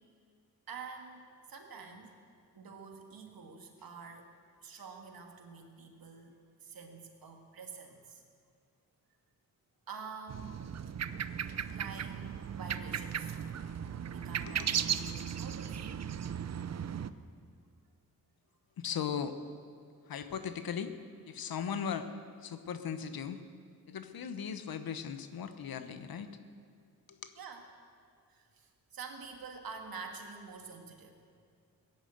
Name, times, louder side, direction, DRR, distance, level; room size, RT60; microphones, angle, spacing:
voice 1, 0.7-2.1 2.6-4.3 4.6-8.2 9.9-10.7 11.7-12.3 12.6-13.3 14.1-15.9 27.4-27.6 28.3-31.2, right 5 dB, 70° right, 3 dB, 2.1 m, -47 dB
sound 1, 10.3-17.1, right 8 dB, 45° right, 0.6 m, -36 dB
voice 2, 14.3-14.7 18.8-19.4 20.1-21.0 21.3-23.4 23.9-26.4 27.1-27.2, left 7 dB, 70° left, 10 dB, 1.1 m, -38 dB
17.0 x 10.5 x 8.0 m, 2.2 s
cardioid pair, 85°, 36 cm